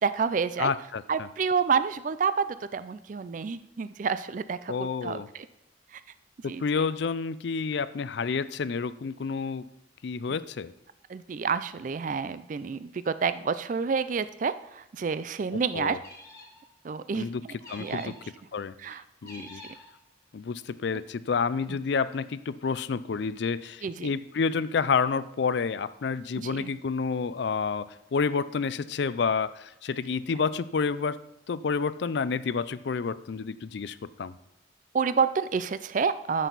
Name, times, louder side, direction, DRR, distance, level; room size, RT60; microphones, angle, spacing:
voice 1, 0.0-0.7 1.1-5.5 5.9-6.0 6.5-6.6 11.1-16.0 16.8-17.3 17.8-18.1 18.8-19.0 19.4-19.5 23.8-24.1 26.4-26.7 34.9-36.5, right 5 dB, 40° right, 13 dB, 0.3 m, -29 dB
voice 2, 0.6-1.3 4.7-5.3 6.4-9.6 10.0-10.7 15.7-16.0 17.1-17.4 17.7-18.1 18.5-18.8 19.2-19.6 20.3-34.3, left 5 dB, 60° left, 16 dB, 0.4 m, -29 dB
sound 1, 16.0-16.7 17.6-18.3 19.2-19.9, left 2 dB, 15° left, 1.9 m, -47 dB
13.5 x 6.3 x 4.0 m, 0.92 s
head